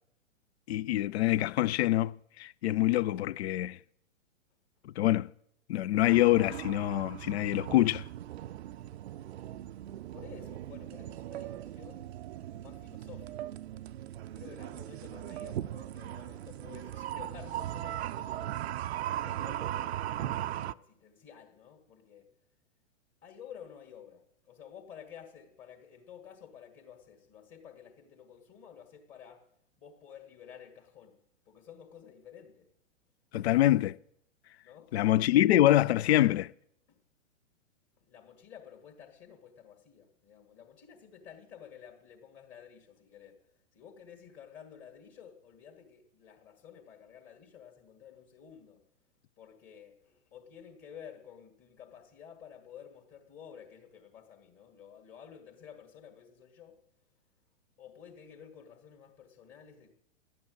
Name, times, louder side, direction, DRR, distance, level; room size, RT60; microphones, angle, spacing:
voice 1, 0.7-3.8 5.0-5.3 5.7-8.0 33.3-34.0 34.9-36.5, left 14 dB, 55° left, 0.5 m, -25 dB
sound 1, 6.0-20.7, right 12 dB, 55° right, 0.5 m, -39 dB
voice 2, 10.1-12.0 12.6-13.5 14.2-22.3 23.2-29.5 29.8-31.2 31.5-32.7 34.6-35.2 36.9-37.0 38.0-48.8 49.4-56.8 57.8-59.9, left 8 dB, 30° left, 1.9 m, -52 dB
12.0 x 8.8 x 7.8 m
figure-of-eight pair, 110°, 38 cm